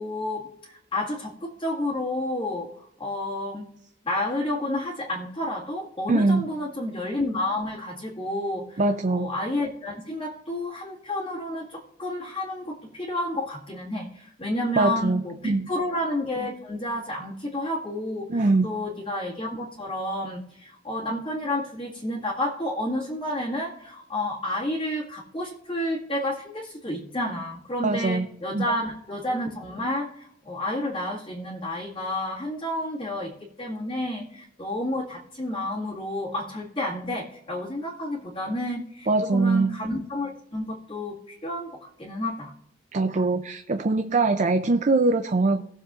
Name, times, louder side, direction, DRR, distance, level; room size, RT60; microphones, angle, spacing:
voice 1, 0.0-2.7 3.0-3.7 4.0-8.8 9.2-33.3 33.6-42.5, left 1 dB, 25° left, -7 dB, 2.0 m, -30 dB
voice 2, 6.1-6.5 8.8-9.3 14.8-15.7 18.3-18.7 27.8-28.3 28.5-28.6 39.1-39.8 42.9-45.6, right 3 dB, 40° right, 7 dB, 0.5 m, -22 dB
19.0 x 7.2 x 2.5 m, 0.76 s
head